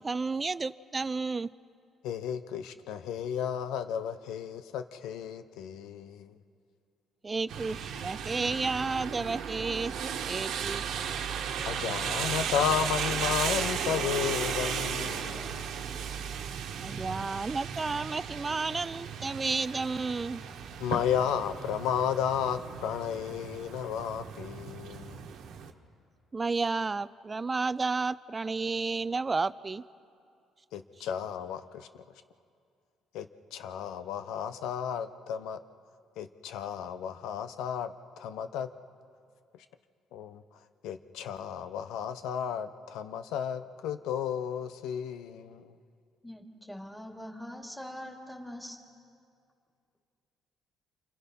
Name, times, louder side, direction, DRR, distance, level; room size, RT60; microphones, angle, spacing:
voice 1, 0.0-1.5 7.2-10.8 16.8-20.4 26.3-29.8, right 4 dB, 25° right, 16 dB, 0.5 m, -32 dB
voice 2, 2.0-6.3 11.7-15.8 20.8-25.2 30.7-32.0 33.1-33.3 33.5-35.6 36.2-38.7 40.1-40.4 40.8-45.7, left 8 dB, 85° left, 11 dB, 1.0 m, -33 dB
sound 1, 7.5-25.7, right 7 dB, 75° right, 1.5 m, -35 dB
voice 3, 46.2-48.8, equal, ahead, 0 dB, 2.9 m, -43 dB
29.0 x 27.5 x 5.5 m, 2.4 s
cardioid pair, 105°, 0 cm